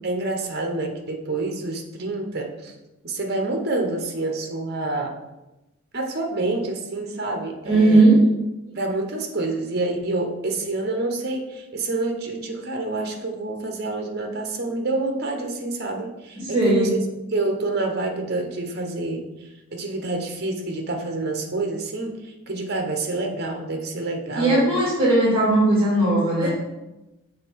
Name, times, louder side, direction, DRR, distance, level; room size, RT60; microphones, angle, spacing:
voice 1, 0.0-2.7 3.0-5.2 5.9-8.1 8.7-17.0 17.3-24.7 26.4-26.5, right 2 dB, 50° right, 3 dB, 0.9 m, -27 dB
voice 2, 7.6-8.2 16.5-16.9 24.4-26.5, right 2 dB, 25° right, -6 dB, 2.0 m, -17 dB
7.5 x 3.5 x 4.6 m, 1.0 s
head